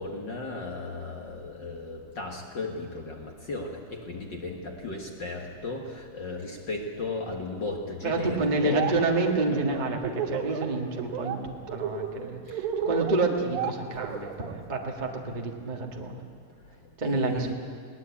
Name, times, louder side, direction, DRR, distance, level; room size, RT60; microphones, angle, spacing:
voice 1, 0.0-3.7 4.1-5.9 6.1-8.9 17.0-17.5, left 3 dB, 50° left, 2 dB, 1.5 m, -35 dB
voice 2, 8.0-16.2 17.0-17.5, right 3 dB, 40° right, 1 dB, 0.6 m, -29 dB
Laughter, 8.5-8.9 9.2-10.6 11.0-11.4 11.7-14.5, right 7 dB, 70° right, 2.6 m, -32 dB
20.5 x 19.0 x 8.5 m, 2.1 s
omnidirectional pair, 3.8 m